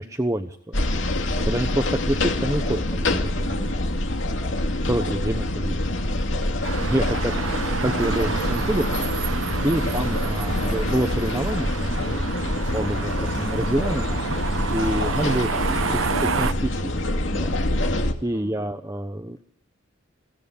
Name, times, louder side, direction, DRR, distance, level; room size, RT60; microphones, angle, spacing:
voice 1, 0.0-0.8 1.5-3.8 4.9-5.8 6.8-7.3 7.8-8.9 9.6-12.2 12.5-14.0 14.7-15.5 16.0-16.9 17.3-17.6 18.2-19.4, right 1 dB, 15° right, 7 dB, 1.0 m, -27 dB
sound 1, 0.7-18.1, left 1 dB, 70° left, 2.4 m, -26 dB
voice 2, 0.9-1.3 7.1-7.5 10.6-10.9 15.5-16.5 18.3-18.8, equal, 20° left, 5 dB, 5.8 m, -43 dB
sound 2, 6.6-16.5, right 5 dB, 85° right, 1.0 m, -29 dB
22.5 x 16.5 x 8.5 m, 0.67 s
head